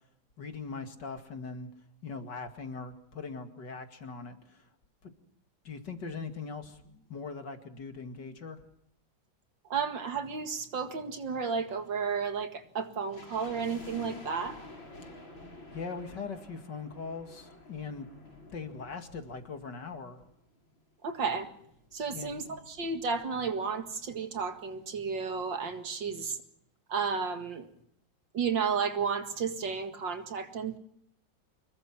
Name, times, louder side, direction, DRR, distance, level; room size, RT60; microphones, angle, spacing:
voice 1, 0.4-1.7 2.0-4.7 5.0-5.1 5.6-8.6 15.7-18.1 18.5-20.3 22.1-22.5, left 4 dB, 60° left, 7 dB, 2.8 m, -41 dB
voice 2, 9.7-14.6 21.0-21.5 21.9-26.4 26.9-27.7 28.3-30.8, right 5 dB, 65° right, 7 dB, 2.6 m, -32 dB
sound 1, 13.1-20.4 20.6-20.7 21.4-23.2 23.5-23.6 23.8-24.1 24.6-24.7, left 1 dB, 75° left, 6.8 m, -50 dB
26.0 x 21.5 x 6.0 m, 0.73 s
omnidirectional pair, 2.2 m